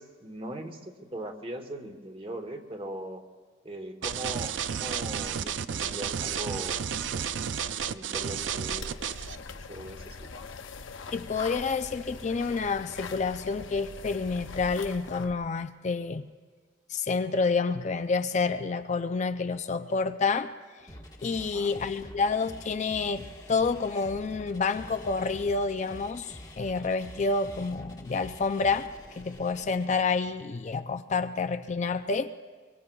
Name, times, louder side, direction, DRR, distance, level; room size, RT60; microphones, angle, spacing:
voice 1, 0.0-3.2 3.6-6.8 7.1-7.5 7.9-10.7 21.4-21.8, right 1 dB, 30° right, 1.1 m, -40 dB
sound 1, 4.0-9.4, right 8 dB, 75° right, 0.5 m, -32 dB
sound 2, 8.7-15.3, left 4 dB, 85° left, 0.7 m, -42 dB
voice 2, 11.1-16.2 16.9-20.5 21.2-32.3, left 4 dB, 40° left, 0.4 m, -29 dB
sound 3, 20.9-30.0, left 1 dB, 20° left, 1.2 m, -47 dB
24.0 x 24.0 x 2.3 m
head